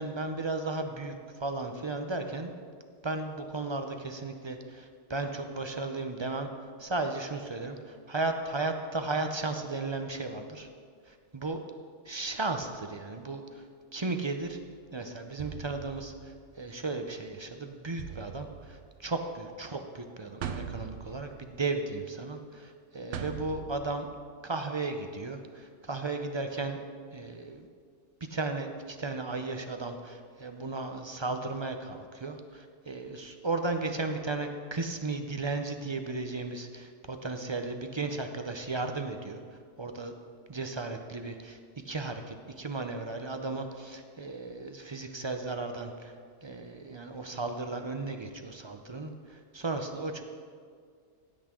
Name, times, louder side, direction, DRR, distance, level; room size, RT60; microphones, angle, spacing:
voice 1, 0.0-2.5 3.0-6.5 6.8-10.7 11.1-11.6 12.1-13.6 13.9-14.6 14.9-24.1 24.4-26.8 27.1-27.7 28.3-39.4 39.8-40.1 40.5-41.6 41.8-46.1 46.4-50.2, right 3 dB, 30° right, 6 dB, 0.5 m, -35 dB
sound 1, 14.4-14.7 15.4-16.8 18.0-19.4 20.4-21.9 23.1-24.0, right 7 dB, 75° right, 1.0 m, -41 dB
16.5 x 8.6 x 3.7 m, 2.1 s
omnidirectional pair, 1.3 m